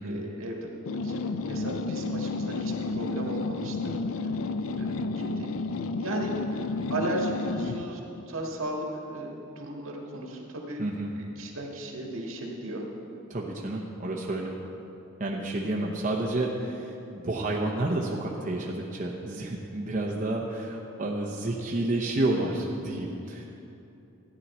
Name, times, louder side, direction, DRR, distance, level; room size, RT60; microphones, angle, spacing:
voice 1, 0.0-3.9 4.8-5.5 6.0-6.3 6.9-8.0 8.3-10.8 11.4-12.8 22.9-23.0, right 1 dB, 75° right, -1 dB, 1.8 m, -35 dB
sound 1, 0.9-7.9, left 3 dB, 80° left, 0.4 m, -31 dB
voice 2, 13.3-14.5 15.2-23.4, right 2 dB, 35° right, -2 dB, 0.8 m, -30 dB
14.0 x 9.6 x 4.3 m, 2.8 s
head